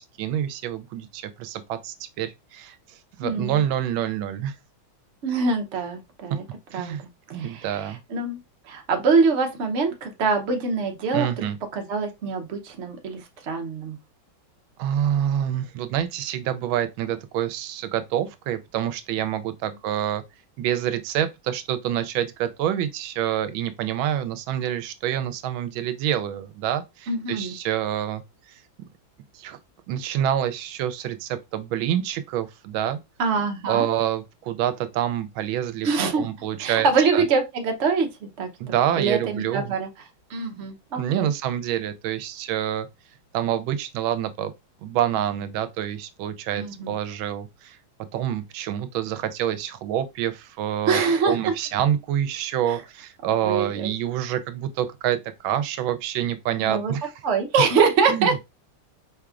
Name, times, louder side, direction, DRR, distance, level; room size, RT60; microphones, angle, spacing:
voice 1, 0.0-4.5 6.7-7.0 7.3-8.0 11.1-11.6 14.8-20.2 20.6-28.2 29.3-29.6 29.9-33.0 33.7-35.9 36.2-37.2 38.6-39.7 41.0-42.9 43.3-44.5 44.8-47.8 48.1-51.0 51.3-57.1 58.1-58.4, right 10 dB, 90° right, 1.4 m, -27 dB
voice 2, 3.2-3.6 5.2-6.4 6.7-6.9 7.3-8.4 8.7-11.5 11.7-14.0 27.1-27.6 33.2-33.8 35.8-36.2 36.6-38.5 39.0-39.9 40.3-41.3 46.6-46.9 50.9-51.5 52.7-52.8 53.4-53.9 56.6-56.9 57.2-58.4, right 4 dB, 50° right, 0.9 m, -24 dB
4.6 x 3.5 x 2.4 m
omnidirectional pair, 2.1 m